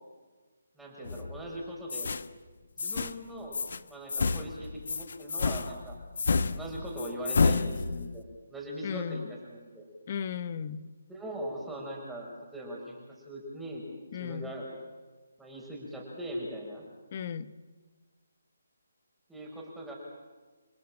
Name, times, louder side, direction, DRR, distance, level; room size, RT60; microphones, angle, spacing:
voice 1, 0.8-2.1 2.8-3.6 3.9-6.0 6.5-9.9 11.1-13.8 14.2-14.7 15.4-16.8 19.3-20.0, right 1 dB, 5° right, -3 dB, 5.8 m, -40 dB
sound 1, 1.1-1.5 1.9-2.3 2.8-3.2 3.5-3.8 4.1-8.2, left 4 dB, 60° left, 1.2 m, -30 dB
voice 2, 8.8-9.3 10.1-10.9 14.1-14.5 17.1-17.5, left 7 dB, 40° left, 14 dB, 1.3 m, -35 dB
29.5 x 18.5 x 8.9 m, 1.3 s
figure-of-eight pair, 155°, 0 cm